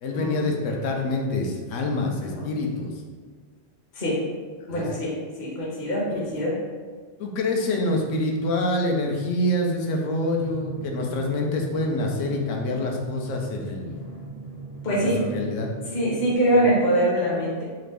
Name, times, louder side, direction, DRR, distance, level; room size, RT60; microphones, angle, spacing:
voice 1, 0.0-2.9 4.7-4.9 6.1-6.3 7.2-14.0 14.9-15.7 16.5-16.7, left 2 dB, 85° left, 1 dB, 0.9 m, -26 dB
voice 2, 4.7-6.5 14.8-15.2 15.9-17.6, right 1 dB, 45° left, -5 dB, 0.8 m, -23 dB
Drum, 10.3-16.4, right 3 dB, 40° right, 0.3 m, -39 dB
3.0 x 2.4 x 3.3 m, 1.5 s
omnidirectional pair, 1.3 m